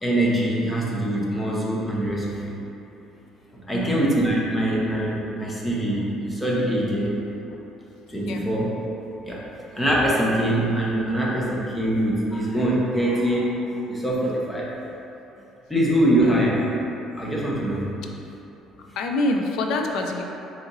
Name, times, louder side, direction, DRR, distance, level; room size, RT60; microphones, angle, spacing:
voice 1, 0.0-2.6 3.5-7.1 8.1-8.7 9.3-9.4 9.7-14.7 15.7-16.6 17.2-17.8, right 1 dB, 5° left, -5 dB, 0.6 m, -23 dB
voice 2, 3.7-4.0 7.5-7.6 8.2-8.4 16.2-16.5 18.8-20.2, left 2 dB, 65° left, 2 dB, 0.4 m, -26 dB
3.8 x 2.8 x 3.9 m, 3.0 s
cardioid pair, 170°, 0 cm